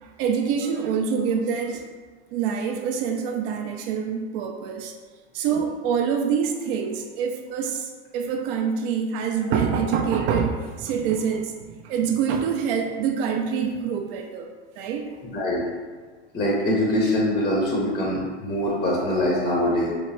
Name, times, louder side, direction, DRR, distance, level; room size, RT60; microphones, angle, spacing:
voice 1, 0.0-1.8 2.3-4.9 5.3-14.5 14.8-15.2, right 6 dB, 55° right, 3 dB, 0.4 m, -26 dB
voice 2, 15.3-15.6 16.3-19.9, left 1 dB, 15° left, -3 dB, 0.6 m, -23 dB
3.1 x 2.7 x 3.1 m, 1.4 s
hypercardioid pair, 120°, 35 cm